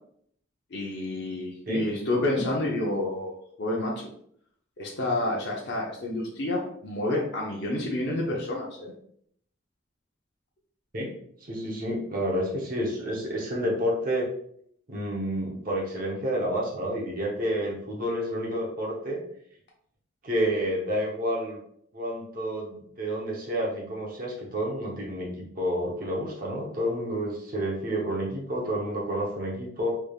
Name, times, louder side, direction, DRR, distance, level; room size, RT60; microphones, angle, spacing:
voice 1, 0.7-3.3 3.6-4.1 4.8-8.9, left 1 dB, 55° left, -2 dB, 0.7 m, -29 dB
voice 2, 11.5-14.3 14.9-19.2 20.2-21.6 21.9-29.9, equal, 45° right, -3 dB, 0.8 m, -29 dB
3.4 x 3.3 x 2.3 m, 0.66 s
head